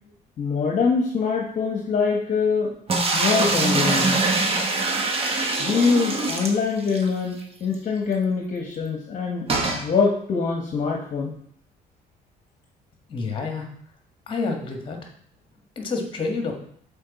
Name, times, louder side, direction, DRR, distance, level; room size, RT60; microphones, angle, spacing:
voice 1, 0.4-2.7 3.1-4.2 5.6-9.5 9.7-11.4, left 5 dB, 45° left, -1 dB, 1.1 m, -24 dB
sound 1, 2.9-7.1 7.4-7.5 7.7-7.8 9.5-9.8, right 3 dB, 35° right, 1.1 m, -23 dB
voice 2, 13.1-13.7 14.3-15.0 15.7-16.5, left 3 dB, 30° left, 2 dB, 1.5 m, -28 dB
6.5 x 4.2 x 4.1 m, 0.64 s
cardioid pair, 110°, 17 cm